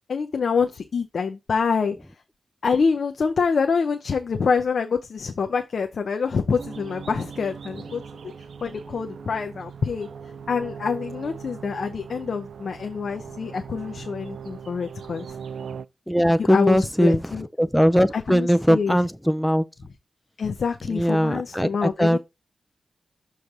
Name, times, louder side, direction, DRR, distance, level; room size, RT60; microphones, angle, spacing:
voice 1, 0.1-2.1 2.6-8.3 8.6-10.1 10.5-15.3 16.4-17.5 18.1-19.0 20.4-22.2, left 5 dB, 70° left, 0.7 m, -26 dB
sound 1, 6.6-15.9, right 6 dB, 85° right, 0.4 m, -39 dB
voice 2, 16.1-17.2 17.6-19.6 20.9-22.2, equal, ahead, 0.4 m, -20 dB
6.7 x 3.2 x 5.8 m
wide cardioid pair, 90°, 0 cm